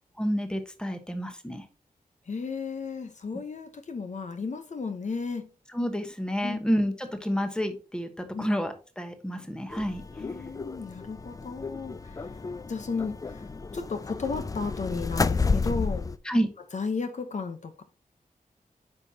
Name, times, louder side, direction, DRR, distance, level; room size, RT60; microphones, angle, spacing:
voice 1, 0.2-1.6 5.7-10.0 16.3-16.5, equal, 5° left, 1.1 m, -29 dB
voice 2, 2.3-5.5 6.4-6.6 8.3-8.5 10.2-12.3 12.7-13.4 13.7-16.1 16.7-17.8, left 4 dB, 55° left, 0.9 m, -34 dB
sound 1, 9.7-16.2, left 4 dB, 25° left, 0.3 m, -31 dB
9.0 x 5.4 x 2.8 m
wide cardioid pair, 120°, 15 cm